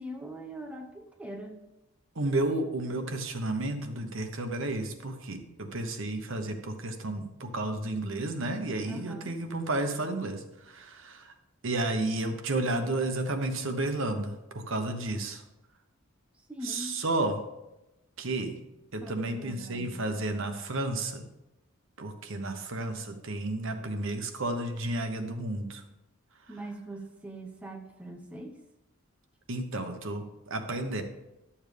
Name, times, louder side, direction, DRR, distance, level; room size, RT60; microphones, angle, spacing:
voice 1, 0.0-1.6 8.9-9.4 16.5-17.0 19.0-20.0 26.5-28.6, right 1 dB, 5° right, 2 dB, 0.7 m, -42 dB
voice 2, 2.1-11.3 11.6-15.4 16.6-17.4 18.2-18.6 18.9-21.3 22.0-25.8 29.5-31.0, right 2 dB, 65° right, 6 dB, 1.1 m, -32 dB
12.0 x 7.1 x 3.4 m, 0.95 s
head